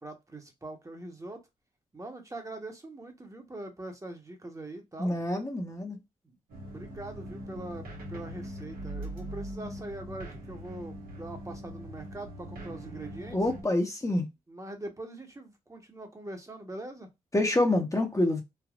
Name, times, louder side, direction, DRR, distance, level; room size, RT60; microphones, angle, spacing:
voice 1, 0.0-1.4 1.9-5.2 6.2-6.3 6.7-13.4 14.5-17.1, right 2 dB, 20° right, 1.0 m, -42 dB
voice 2, 5.0-6.0 13.3-14.2 17.3-18.4, left 1 dB, 20° left, 0.8 m, -27 dB
sound 1, 6.5-13.6, equal, 85° right, 1.2 m, -41 dB
3.4 x 2.2 x 2.3 m
cardioid pair, 55°, 15 cm